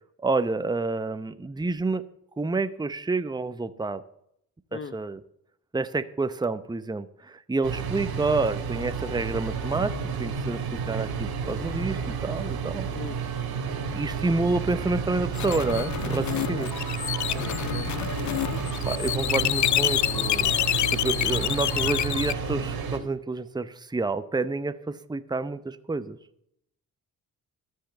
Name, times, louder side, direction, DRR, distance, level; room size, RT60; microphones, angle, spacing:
voice 1, 0.2-2.0 2.4-4.0 4.7-5.2 5.7-12.9 13.9-16.7 18.9-20.5 20.9-26.2, right 3 dB, 10° right, 12 dB, 0.8 m, -29 dB
sound 1, 7.6-23.0, right 6 dB, 75° right, 2.6 m, -31 dB
sound 2, 15.3-22.3, left 13 dB, 50° left, 0.4 m, -27 dB
sound 3, 15.8-22.7, left 4 dB, 75° left, 3.5 m, -41 dB
voice 2, 16.3-16.7 17.3-18.1, left 5 dB, 35° left, 11 dB, 0.9 m, -39 dB
13.5 x 5.7 x 8.0 m, 0.75 s
cardioid pair, 70°, 38 cm